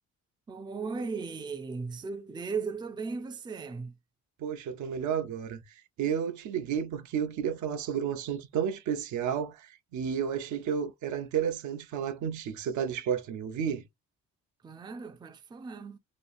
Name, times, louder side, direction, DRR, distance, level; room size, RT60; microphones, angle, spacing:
voice 1, 0.5-3.9 14.6-16.0, right 4 dB, 15° right, 0.4 m, -37 dB
voice 2, 4.4-5.6 6.0-13.8, right 8 dB, 75° right, 0.6 m, -32 dB
2.9 x 2.4 x 2.3 m
cardioid pair, 90°, 30 cm